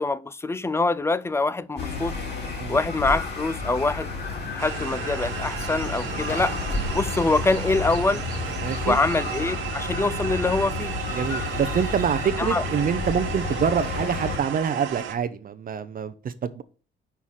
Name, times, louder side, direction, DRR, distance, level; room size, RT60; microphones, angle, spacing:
voice 1, 0.0-2.1 2.7-4.1 4.5-6.6 6.9-8.3 8.8-11.0 12.4-12.6, left 3 dB, 15° left, 0.4 m, -24 dB
sound 1, 1.8-14.4, left 4 dB, 55° left, 3.5 m, -31 dB
sound 2, 4.6-15.1, right 10 dB, 80° right, 1.0 m, -34 dB
voice 2, 8.6-9.0 11.1-16.6, right 7 dB, 45° right, 0.6 m, -26 dB
5.7 x 4.7 x 5.6 m
cardioid pair, 90°, 20 cm